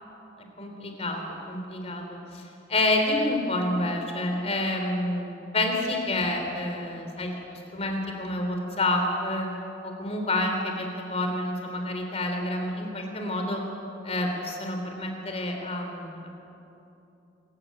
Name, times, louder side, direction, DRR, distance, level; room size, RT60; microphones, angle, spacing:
voice 1, 0.6-2.4 2.7-9.5 9.8-13.6 14.0-16.3, left 1 dB, 35° left, 3 dB, 3.6 m, -28 dB
25.5 x 15.5 x 9.3 m, 2.9 s
head